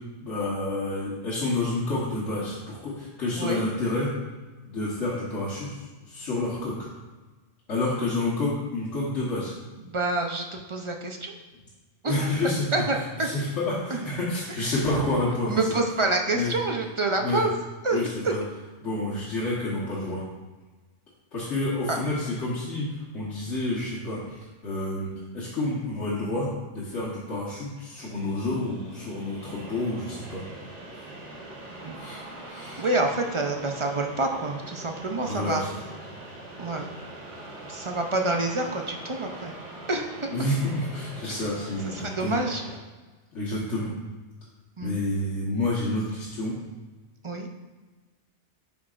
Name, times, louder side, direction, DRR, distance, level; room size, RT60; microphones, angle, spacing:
voice 1, 0.2-4.1 4.6-6.9 7.7-9.5 12.0-12.7 13.2-15.8 16.3-16.5 17.2-17.4 17.9-18.4 18.8-20.2 21.3-30.4 31.0-31.1 32.0-32.8 35.2-35.8 40.3-42.3 43.3-43.9 44.8-46.6, left 2 dB, 90° left, -8 dB, 1.6 m, -29 dB
voice 2, 9.8-11.3 12.0-12.2 12.7-13.3 15.5-17.6 17.8-18.3 21.9-22.0 31.8-32.0 32.8-35.6 36.6-36.8 37.7-39.5 39.9-40.3 41.3-41.4 41.8-42.7 44.8-45.0 47.2-47.5, right 2 dB, 40° right, 3 dB, 0.4 m, -27 dB
sound 1, 28.0-42.8, right 1 dB, 80° right, 1.5 m, -42 dB
9.4 x 6.0 x 2.4 m, 1.3 s
omnidirectional pair, 1.2 m